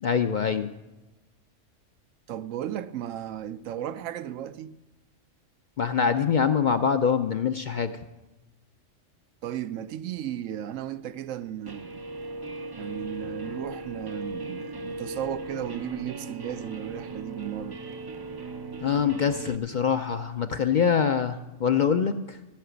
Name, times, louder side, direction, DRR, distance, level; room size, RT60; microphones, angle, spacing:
voice 1, 0.0-0.7 5.8-7.9 18.8-22.4, left 7 dB, 55° left, 0.5 m, -24 dB
voice 2, 2.3-4.7 9.4-12.0 12.8-17.8, right 10 dB, 85° right, 1.0 m, -35 dB
Guitar, 11.7-19.6, right 2 dB, 40° right, 0.3 m, -37 dB
15.0 x 5.8 x 9.3 m
omnidirectional pair, 1.3 m